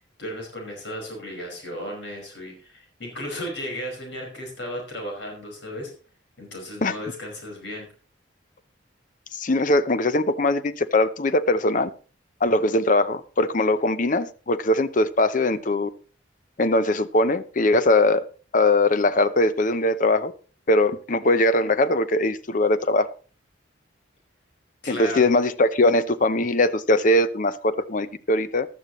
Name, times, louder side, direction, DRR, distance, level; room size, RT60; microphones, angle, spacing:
voice 1, 0.2-5.9 6.4-7.9 24.8-25.3, equal, 65° left, 5.2 m, -35 dB
voice 2, 9.3-11.9 12.4-15.9 16.6-18.3 18.5-20.3 20.7-23.1 24.9-28.7, left 2 dB, 45° left, 0.7 m, -21 dB
15.0 x 12.5 x 3.1 m
head